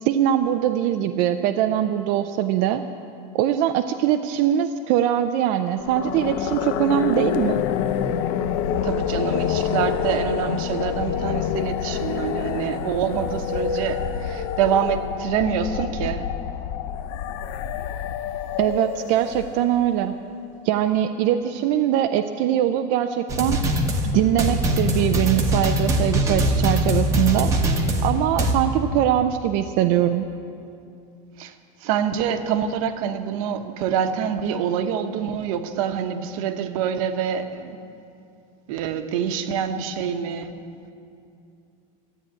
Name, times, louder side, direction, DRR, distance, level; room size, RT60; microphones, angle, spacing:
voice 1, 0.0-2.8 3.3-7.6 18.6-20.1 20.6-23.6 24.1-27.5 28.0-30.3, right 11 dB, 40° right, 6 dB, 0.4 m, -22 dB
sound 1, 5.8-19.9, left 9 dB, 50° left, 0.5 m, -27 dB
voice 2, 8.8-16.3 31.4-31.5 31.8-37.8 38.7-40.5, right 8 dB, 60° right, 8 dB, 1.0 m, -26 dB
sound 2, 23.3-28.5, equal, 15° right, 1.0 m, -22 dB
13.0 x 9.0 x 9.8 m, 2.5 s
supercardioid pair, 170°, 20 cm